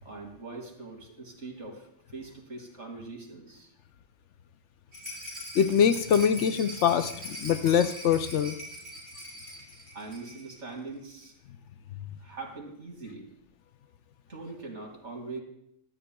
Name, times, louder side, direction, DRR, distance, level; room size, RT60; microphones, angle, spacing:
voice 1, 0.0-3.7 9.9-11.3 12.2-13.3 14.3-15.4, right 3 dB, 65° right, 2 dB, 2.5 m, -42 dB
Rattle, 4.9-10.6 10.9-11.0 11.2-11.3, equal, 35° right, 4.5 m, -42 dB
voice 2, 5.6-8.5, left 8 dB, 70° left, 11 dB, 0.9 m, -24 dB
17.0 x 12.5 x 2.3 m, 0.75 s
omnidirectional pair, 1.3 m